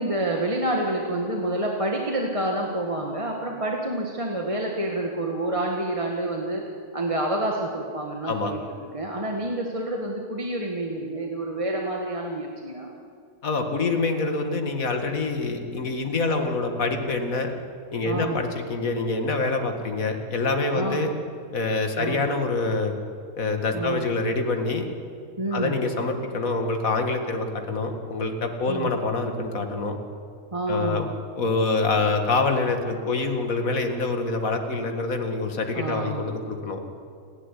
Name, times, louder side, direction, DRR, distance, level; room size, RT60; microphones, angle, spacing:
voice 1, 0.0-6.7 6.9-8.6 8.9-12.9 15.5-15.6 16.2-16.4 18.0-18.4 20.7-21.0 22.0-22.2 23.7-24.1 25.4-25.8 28.7-28.9 30.5-31.1 35.7-36.2, right 1 dB, 25° right, 0 dB, 1.7 m, -28 dB
voice 2, 13.4-17.5 17.9-21.1 21.5-22.9 23.4-24.9 25.5-30.0 30.7-31.1 31.4-36.8, left 3 dB, 75° left, 5 dB, 2.3 m, -26 dB
29.5 x 12.0 x 10.0 m, 2.3 s
omnidirectional pair, 1.5 m